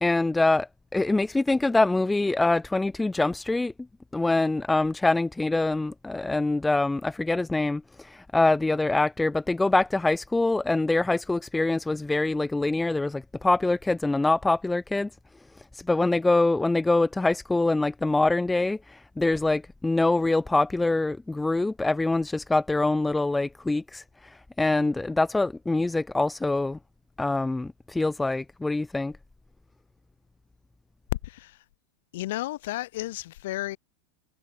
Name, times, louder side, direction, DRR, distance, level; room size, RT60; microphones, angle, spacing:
voice 1, 0.0-3.7 4.1-15.1 15.6-26.8 27.2-29.1, left 2 dB, 10° left, 0.5 m, -24 dB
voice 2, 31.2-31.6 32.1-33.8, left 16 dB, 70° left, 0.9 m, -33 dB
hypercardioid pair, 95°, 0 cm